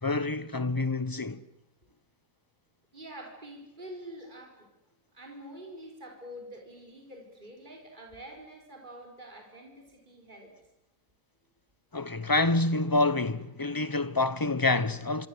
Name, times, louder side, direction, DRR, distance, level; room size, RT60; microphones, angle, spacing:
voice 1, 0.0-1.4 11.9-15.3, left 2 dB, 15° left, 0.9 m, -27 dB
voice 2, 2.9-4.7 5.1-10.6, right 1 dB, 30° right, 5.4 m, -46 dB
27.0 x 25.0 x 8.1 m
omnidirectional pair, 1.5 m